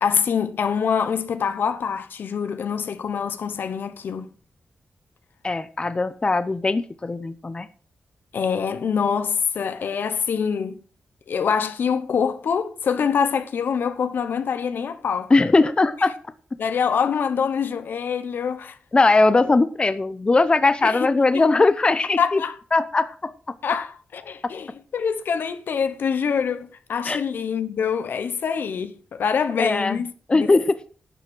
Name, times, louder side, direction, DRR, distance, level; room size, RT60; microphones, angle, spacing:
voice 1, 0.0-4.3 8.3-10.8 11.3-15.3 16.6-18.8 20.8-21.1 21.3-21.4 22.2-22.6 23.6-30.5, left 6 dB, 75° left, 1.0 m, -25 dB
voice 2, 5.4-7.7 15.3-16.1 18.9-22.4 22.7-23.3 27.0-27.2 29.6-30.0 30.3-30.8, left 3 dB, 30° left, 0.8 m, -19 dB
11.5 x 7.2 x 6.2 m
wide cardioid pair, 100°, 4 cm